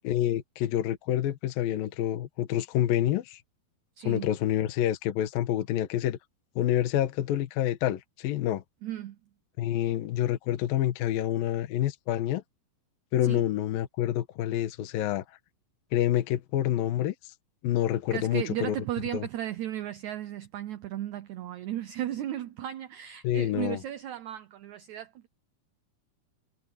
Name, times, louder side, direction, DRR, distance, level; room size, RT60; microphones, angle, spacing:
voice 1, 0.0-3.4 4.0-6.2 6.6-8.6 9.6-12.4 13.1-15.2 15.9-17.1 17.6-18.8 19.1-19.2 23.2-23.8, left 12 dB, 75° left, 2.8 m, -27 dB
voice 2, 4.0-4.3 8.8-9.2 13.2-13.4 18.1-25.3, right 12 dB, 90° right, 1.6 m, -35 dB
omnidirectional pair, 4.4 m